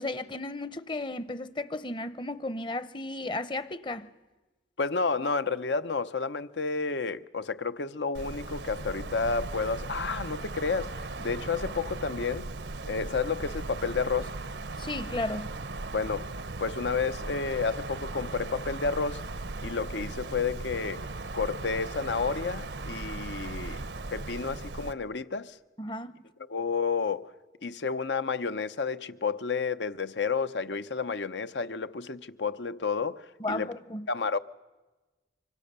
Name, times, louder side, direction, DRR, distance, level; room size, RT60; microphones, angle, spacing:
voice 1, 0.0-4.1 14.8-15.5 25.8-26.2 33.4-34.1, left 2 dB, 25° left, 0.8 m, -34 dB
voice 2, 4.8-12.5 12.9-14.3 15.9-16.3 16.6-19.2 19.6-21.0 21.3-23.8 24.1-25.6 26.5-27.3 27.6-33.7 34.1-34.4, left 4 dB, 80° left, 0.9 m, -31 dB
Wind, 8.1-24.9, right 3 dB, 75° right, 0.8 m, -38 dB
26.0 x 25.0 x 6.8 m
head